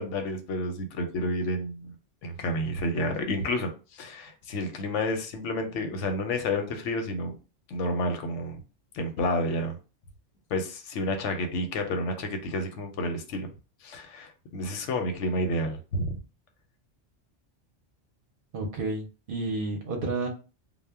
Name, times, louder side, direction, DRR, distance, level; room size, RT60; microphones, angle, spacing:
voice 1, 0.0-2.0 2.2-7.3 7.7-8.6 8.9-9.8 10.5-13.5 13.8-16.2, left 1 dB, 85° left, 0.9 m, -30 dB
voice 2, 18.5-20.3, right 2 dB, 55° right, 0.7 m, -31 dB
2.1 x 2.0 x 3.3 m
omnidirectional pair, 1.2 m